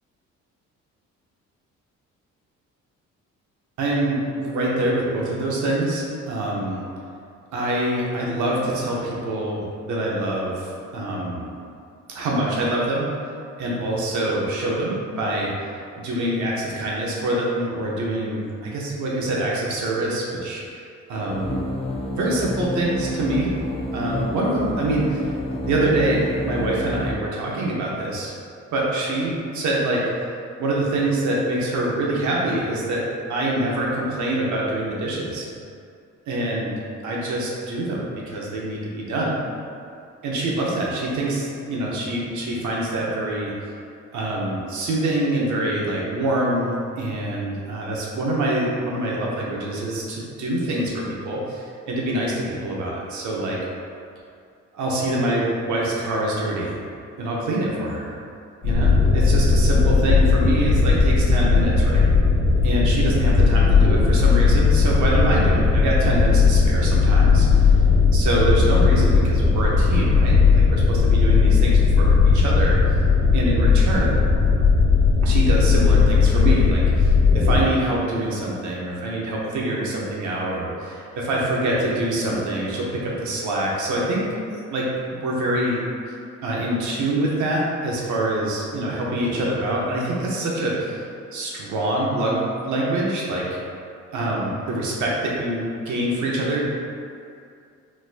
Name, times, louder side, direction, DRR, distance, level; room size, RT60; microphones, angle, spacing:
voice 1, 3.8-6.8 7.5-11.5 12.1-13.1 13.6-15.5 16.0-20.6 21.1-21.6 22.1-23.5 23.9-25.3 25.6-28.3 28.7-30.1 30.6-33.0 33.3-35.5 36.3-36.7 37.0-39.4 40.2-43.5 44.1-53.6 54.7-56.8 57.2-58.1 58.6-62.1 62.6-67.7 68.1-72.8 73.3-74.2 75.2-85.8 86.4-91.0 91.3-92.4 92.7-93.5 94.1-96.7, right 1 dB, 75° right, -4 dB, 0.9 m, -25 dB
sound 1, 21.3-27.1, left 1 dB, 20° left, 0.4 m, -29 dB
sound 2, 58.6-77.6, left 4 dB, 65° left, 1.2 m, -17 dB
4.1 x 2.6 x 2.5 m, 2.4 s
cardioid pair, 90°, 30 cm